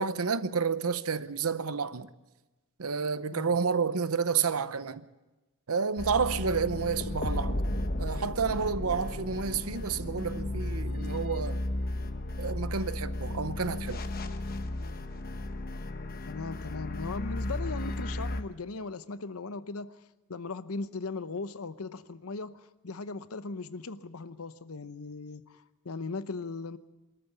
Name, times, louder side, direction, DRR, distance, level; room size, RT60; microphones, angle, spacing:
voice 1, 0.0-2.1 2.8-5.1 5.7-7.7 8.0-11.6 12.4-14.0, right 5 dB, 75° right, 0.8 m, -30 dB
sound 1, 6.0-18.4, left 1 dB, 40° left, 1.0 m, -34 dB
voice 2, 16.3-19.9 20.3-26.8, left 3 dB, 75° left, 0.8 m, -38 dB
23.5 x 13.5 x 8.2 m
head